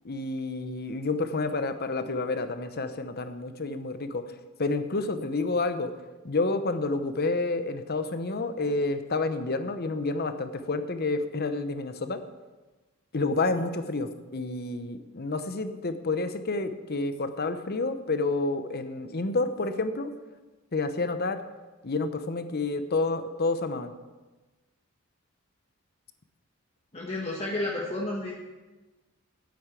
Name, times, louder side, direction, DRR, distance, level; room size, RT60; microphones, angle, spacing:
voice 1, 0.0-4.2 4.6-5.9 6.2-12.2 13.1-20.1 20.7-21.4 21.8-23.9, left 3 dB, 50° left, 10 dB, 0.9 m, -29 dB
voice 2, 26.9-28.3, left 2 dB, 30° left, -3 dB, 1.3 m, -31 dB
9.3 x 8.8 x 8.2 m, 1.2 s
head